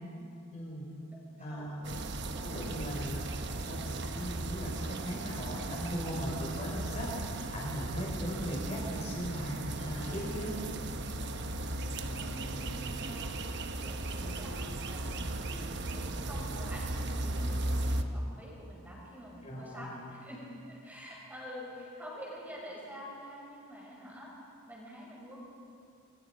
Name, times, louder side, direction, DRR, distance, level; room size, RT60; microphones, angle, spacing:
voice 1, 0.5-0.9 1.4-1.8 2.4-9.5 9.8-10.5 19.4-20.0, equal, 30° left, -4 dB, 5.3 m, -39 dB
voice 2, 1.5-2.0 12.2-24.3 24.7-25.4, equal, 10° right, -4 dB, 6.0 m, -47 dB
sound 1, 1.8-18.0, right 2 dB, 50° right, 1.0 m, -36 dB
sound 2, 9.8-13.3 14.2-18.0, equal, 65° left, 6.0 m, -50 dB
27.0 x 22.5 x 5.2 m, 2.5 s
head